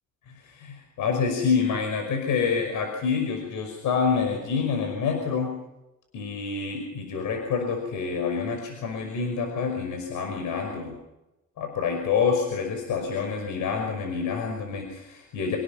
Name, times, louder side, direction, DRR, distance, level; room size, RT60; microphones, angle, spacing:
voice 1, 0.3-5.6 6.1-11.0 11.6-15.6, left 5 dB, 85° left, 3 dB, 5.6 m, -27 dB
28.0 x 18.0 x 6.0 m, 0.93 s
cardioid pair, 90°, 30 cm